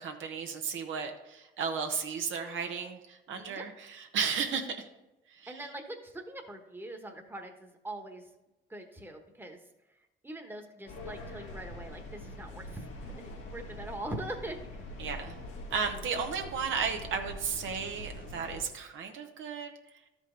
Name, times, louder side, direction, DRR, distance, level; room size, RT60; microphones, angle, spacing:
voice 1, 0.0-4.9 5.4-5.5 15.0-15.4 15.7-19.7, right 6 dB, 80° right, 4 dB, 1.0 m, -34 dB
voice 2, 3.3-3.6 5.5-8.2 8.7-9.6 10.2-12.9 13.1-14.8, right 1 dB, 10° right, 3 dB, 1.1 m, -42 dB
sound 1, 10.9-18.6, left 1 dB, 85° left, 1.8 m, -44 dB
12.5 x 5.1 x 3.8 m, 0.98 s
cardioid pair, 90°, 20 cm